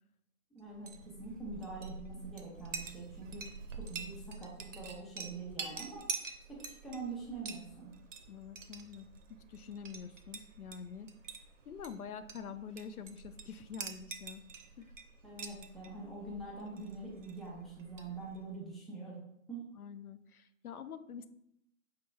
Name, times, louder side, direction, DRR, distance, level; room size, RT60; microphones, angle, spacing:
voice 1, 0.5-3.4 3.8-6.0 6.5-7.9 15.2-19.7, right 3 dB, ahead, -5 dB, 0.3 m, -44 dB
Chink clink, 0.7-18.5, right 5 dB, 60° right, 0.6 m, -47 dB
voice 2, 8.3-9.1 9.5-11.1 11.7-14.4 14.8-14.9 19.8-21.3, left 6 dB, 80° left, 12 dB, 0.5 m, -46 dB
5.3 x 3.7 x 2.3 m, 0.79 s
figure-of-eight pair, 150°, 43 cm